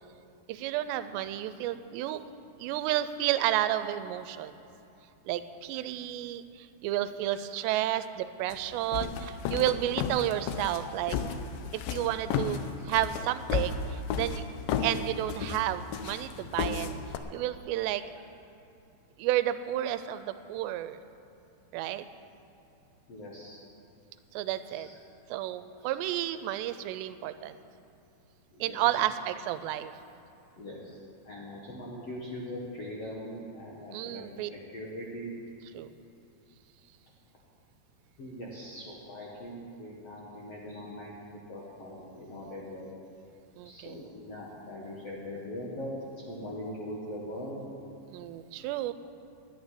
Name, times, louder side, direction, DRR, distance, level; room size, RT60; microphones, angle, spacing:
voice 1, 0.5-2.2 2.6-4.6 5.3-11.2 11.7-14.4 14.8-16.9 17.3-18.0 19.2-21.0 21.7-22.1 24.3-24.9 25.3-27.6 28.6-29.9 33.9-34.5 35.7-35.9 43.6-44.0 48.1-48.9, right 13 dB, 90° right, 12 dB, 2.8 m, -31 dB
sound 1, 8.5-17.2, left 6 dB, 80° left, 2.1 m, -33 dB
voice 2, 23.1-23.6 24.7-25.0 25.8-25.9 28.5-29.0 30.6-31.0 31.2-35.4 38.2-41.1 41.5-42.9 43.6-45.9 46.3-47.7, left 1 dB, 60° left, -4 dB, 1.6 m, -41 dB
11.5 x 9.5 x 9.7 m, 2.7 s
omnidirectional pair, 4.9 m